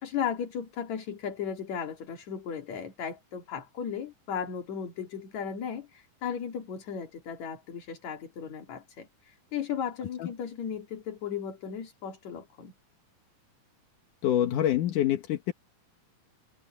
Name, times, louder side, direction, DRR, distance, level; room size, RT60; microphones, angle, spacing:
voice 1, 0.0-12.7, left 7 dB, 65° left, 3.7 m, -36 dB
voice 2, 14.2-15.5, left 11 dB, 85° left, 3.0 m, -26 dB
omnidirectional pair, 3.5 m